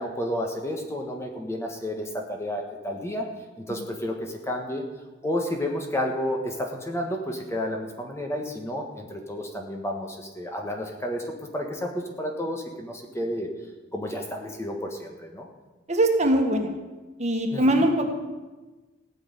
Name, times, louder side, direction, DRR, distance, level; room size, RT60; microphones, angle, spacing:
voice 1, 0.0-4.9 5.2-13.5 13.9-15.5 17.5-17.8, left 1 dB, 15° left, 2 dB, 1.5 m, -31 dB
voice 2, 15.9-16.7 17.2-18.1, right 1 dB, 35° right, 3 dB, 1.7 m, -21 dB
16.0 x 6.4 x 9.7 m, 1.2 s
head